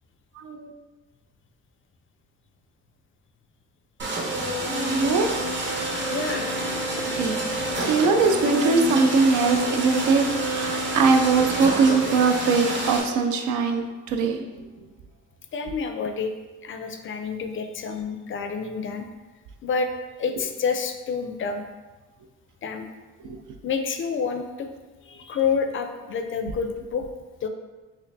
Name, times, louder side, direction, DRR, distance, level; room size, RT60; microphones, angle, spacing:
voice 1, 0.4-0.7 4.7-5.3 7.1-14.4, right 4 dB, 85° right, 5 dB, 0.5 m, -22 dB
sound 1, 4.0-13.0, right 1 dB, 40° right, 0.8 m, -28 dB
voice 2, 6.1-6.5 15.5-16.3 16.6-19.1 19.6-19.9 20.2-21.6 22.6-22.9 23.6-24.7 25.1-27.0 27.4-27.5, left 5 dB, 45° left, 6 dB, 0.4 m, -28 dB
4.3 x 2.4 x 2.6 m, 1.2 s
cardioid pair, 90°, 30 cm